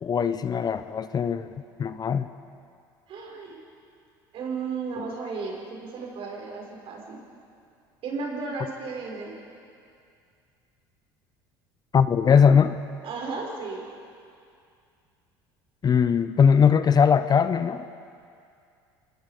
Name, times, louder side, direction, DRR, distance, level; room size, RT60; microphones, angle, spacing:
voice 1, 0.0-1.5 1.8-2.3 11.9-12.8 15.8-17.8, left 7 dB, 35° left, 12 dB, 0.9 m, -20 dB
voice 2, 3.1-3.6 4.3-7.2 8.0-9.4 13.0-13.8, right 4 dB, 55° right, -1 dB, 6.2 m, -34 dB
27.0 x 21.0 x 5.3 m, 2.4 s
hypercardioid pair, 70°, 11 cm